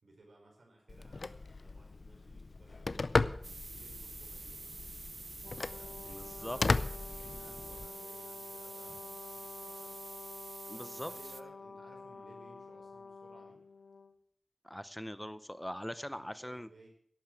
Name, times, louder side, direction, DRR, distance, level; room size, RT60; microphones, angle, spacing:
voice 1, 0.0-4.6 5.3-10.0 10.7-13.6 16.0-16.9, right 2 dB, 90° right, 0 dB, 4.8 m, -60 dB
Telephone, 0.9-7.9, left 3 dB, 65° left, 0.5 m, -36 dB
sound 1, 3.4-11.4, right 3 dB, 70° right, 0.6 m, -47 dB
Brass instrument, 5.4-14.1, left 4 dB, 85° left, 1.7 m, -50 dB
voice 2, 6.1-6.6 10.7-11.1 14.6-16.7, equal, 10° left, 14 dB, 0.7 m, -41 dB
11.5 x 8.7 x 7.9 m, 0.64 s
wide cardioid pair, 60°, 0 cm